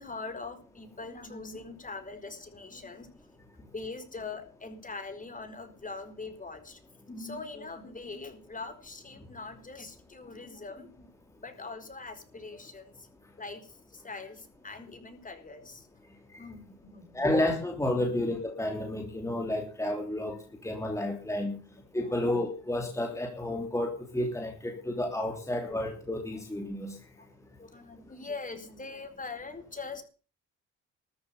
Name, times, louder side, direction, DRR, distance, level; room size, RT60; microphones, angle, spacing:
voice 1, 0.0-3.1 3.7-6.8 7.1-11.1 11.4-13.1 13.4-15.9 16.4-17.4 20.9-21.0 21.5-22.3 25.4-25.6 27.2-27.3 27.6-30.0, left 3 dB, 25° left, 8 dB, 4.5 m, -42 dB
voice 2, 17.1-20.4 20.6-21.5 21.9-26.9, left 1 dB, 10° left, 3 dB, 3.3 m, -31 dB
14.0 x 8.3 x 8.4 m, 0.37 s
cardioid pair, 90°, 30 cm